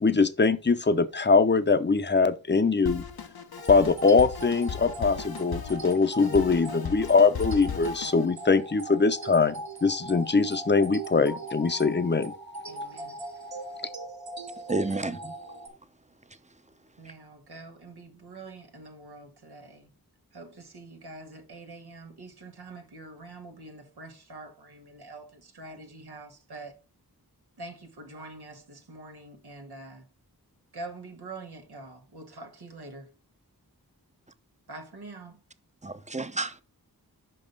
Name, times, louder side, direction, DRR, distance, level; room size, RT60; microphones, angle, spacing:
voice 1, 0.0-3.0 3.7-12.3, left 4 dB, 30° left, 0.7 m, -22 dB
Drum kit, 2.9-8.3, left 7 dB, 70° left, 0.8 m, -37 dB
sound 1, 3.6-15.7, right 2 dB, 70° right, 1.6 m, -40 dB
voice 2, 12.7-13.2 17.0-19.9 20.3-26.7 27.6-30.1 30.7-33.1 34.7-35.4, right 2 dB, 85° right, 1.3 m, -45 dB
voice 3, 14.7-15.3 35.8-36.6, right 2 dB, 20° right, 0.7 m, -30 dB
5.5 x 5.4 x 5.3 m
wide cardioid pair, 45°, 38 cm